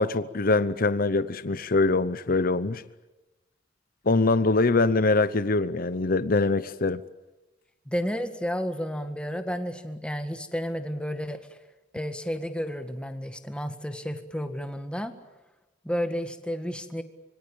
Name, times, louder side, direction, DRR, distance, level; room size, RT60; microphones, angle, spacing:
voice 1, 0.0-2.8 4.1-7.0, left 3 dB, 50° left, 0.8 m, -23 dB
voice 2, 7.9-11.6 11.9-15.2 15.8-17.0, equal, 5° left, 1.8 m, -32 dB
25.5 x 23.5 x 8.8 m
head